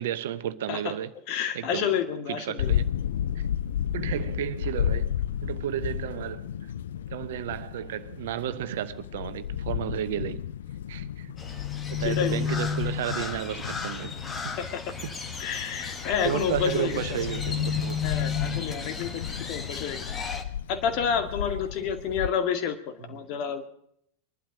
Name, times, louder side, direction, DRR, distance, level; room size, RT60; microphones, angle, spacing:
voice 1, 0.0-1.1 1.5-1.9 2.5-2.9 3.3-3.5 3.9-5.2 5.4-6.5 7.1-10.4 10.9-11.6 11.9-14.1 15.0-15.1 16.2-18.0, right 11 dB, 55° right, 0.9 m, -32 dB
voice 2, 1.3-2.7 12.0-12.5 14.6-14.8 15.4-17.2 18.0-19.2 19.5-20.0 20.7-23.7, left 7 dB, 40° left, 2.1 m, -29 dB
sound 1, 2.6-22.3, left 10 dB, 60° left, 0.6 m, -33 dB
Crow, 11.4-20.4, left 6 dB, 20° left, 1.5 m, -33 dB
22.0 x 12.0 x 5.1 m
figure-of-eight pair, 90°, 0 cm